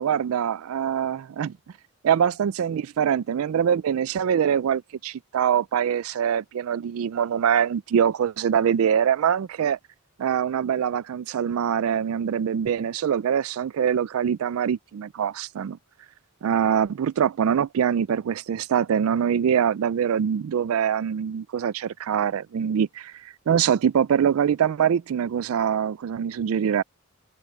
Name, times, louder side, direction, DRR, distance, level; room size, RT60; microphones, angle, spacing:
voice 1, 0.0-1.6 2.0-9.8 10.2-15.8 16.4-26.8, right 8 dB, 70° right, 0.3 m, -24 dB
head